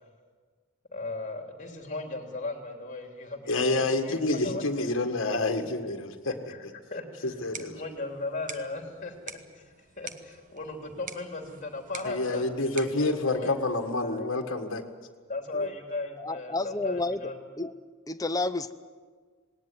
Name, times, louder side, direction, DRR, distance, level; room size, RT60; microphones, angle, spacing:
voice 1, 0.9-3.6 3.9-4.9 5.5-5.6 6.2-7.3 7.6-13.6 13.8-14.3 15.3-17.4, left 3 dB, 35° left, 3 dB, 3.2 m, -37 dB
voice 2, 3.5-6.4 7.2-7.8 12.0-14.8 15.5-15.7, left 2 dB, 60° left, 4 dB, 1.8 m, -28 dB
sound 1, 7.2-14.2, right 6 dB, 35° right, 1.1 m, -47 dB
voice 3, 16.2-17.2 17.6-17.7 18.1-18.7, left 2 dB, 15° left, 9 dB, 0.6 m, -30 dB
19.0 x 18.5 x 9.6 m, 1.5 s
head